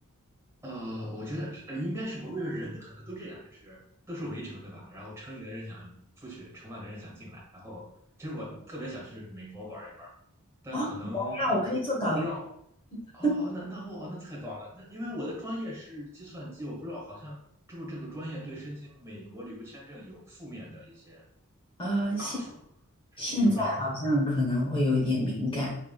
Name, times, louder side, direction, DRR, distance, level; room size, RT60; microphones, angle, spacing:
voice 1, 0.6-3.8 4.1-7.9 8.2-10.1 10.6-12.5 13.1-17.4 17.7-21.2 22.2-22.6 23.1-23.9, equal, 10° right, -4 dB, 1.5 m, -39 dB
voice 2, 11.1-12.2 12.9-13.4 21.8-22.3 23.2-25.7, equal, 20° left, -4 dB, 0.7 m, -27 dB
4.6 x 3.5 x 2.3 m, 0.74 s
head